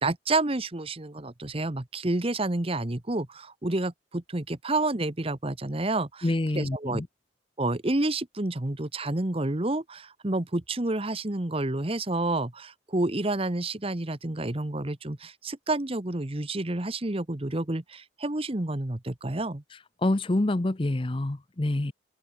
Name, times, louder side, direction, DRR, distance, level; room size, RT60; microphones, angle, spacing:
voice 1, 0.0-6.3 6.5-7.0 7.6-19.6, right 2 dB, 30° right, 1.2 m, -29 dB
voice 2, 6.2-7.1 20.0-21.9, left 1 dB, 25° left, 0.7 m, -26 dB
open air
head